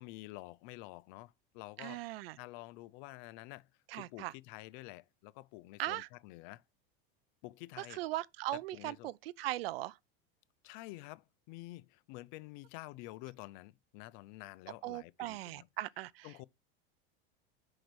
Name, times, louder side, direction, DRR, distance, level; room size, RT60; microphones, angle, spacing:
voice 1, 0.0-2.0 2.4-6.6 7.4-8.0 8.5-9.1 10.6-15.7 16.2-16.4, left 19 dB, 60° left, 0.6 m, -49 dB
voice 2, 1.8-2.4 3.9-4.3 5.8-6.1 7.8-10.0 14.8-16.3, right 16 dB, 85° right, 0.5 m, -39 dB
5.3 x 4.9 x 5.9 m
supercardioid pair, 125°, 29 cm